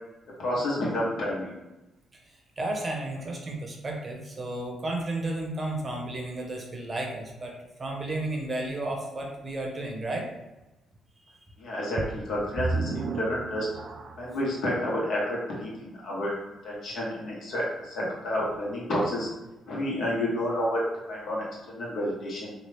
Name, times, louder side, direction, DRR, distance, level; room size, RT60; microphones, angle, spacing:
voice 1, 0.4-1.5 11.6-13.7 14.2-16.3 16.6-19.3 19.7-20.8 21.1-22.5, left 1 dB, 70° left, -4 dB, 1.1 m, -30 dB
voice 2, 2.6-10.3 11.3-11.4, right 2 dB, 30° right, 0 dB, 0.8 m, -33 dB
sound 1, 12.0-14.4 15.1-15.2 15.8-15.9, right 3 dB, 50° right, 0.3 m, -33 dB
3.0 x 2.3 x 3.3 m, 1.0 s
cardioid pair, 90°, 0 cm